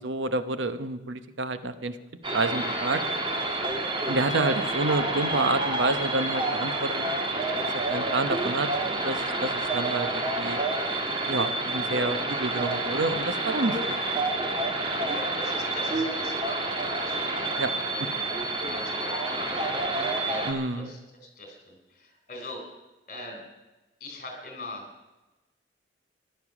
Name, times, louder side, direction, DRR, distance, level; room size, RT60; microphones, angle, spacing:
voice 1, 0.0-2.0 2.3-3.0 4.0-7.0 7.6-10.6 11.3-14.0 17.6-17.7 20.5-20.9, right 2 dB, 85° right, 11 dB, 0.9 m, -29 dB
sound 1, 2.2-20.5, right 2 dB, 25° right, 1.7 m, -29 dB
voice 2, 15.0-17.2 17.7-19.7 20.2-21.0 21.4-22.7 23.1-23.4 24.0-24.9, left 1 dB, 45° left, 4 dB, 3.8 m, -41 dB
15.0 x 11.5 x 6.1 m, 1.1 s
head